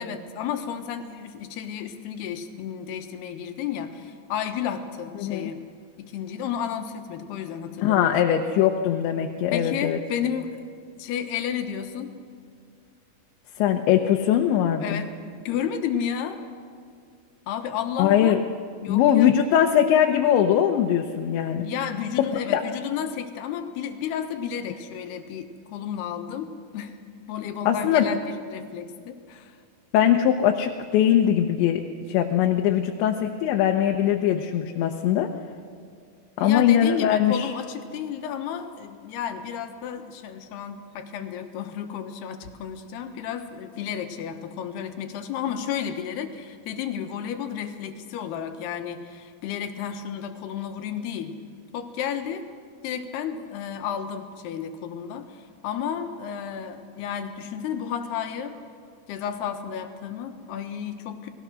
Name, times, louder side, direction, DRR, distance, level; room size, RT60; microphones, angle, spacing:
voice 1, 0.0-5.6 6.0-8.2 9.5-10.6 11.0-12.1 14.8-15.1 15.4-16.4 17.5-18.4 18.8-19.3 21.6-27.0 27.3-29.6 36.4-51.4 51.7-52.5 52.8-58.6 59.1-61.3, left 8 dB, 70° left, 6 dB, 3.2 m, -32 dB
voice 2, 5.2-5.5 7.8-10.0 13.6-15.0 18.0-18.4 18.9-21.7 22.5-22.6 27.7-28.1 29.9-35.3 36.4-37.5, left 10 dB, 90° left, 3 dB, 3.3 m, -21 dB
30.0 x 19.5 x 6.3 m, 2.3 s
omnidirectional pair, 5.0 m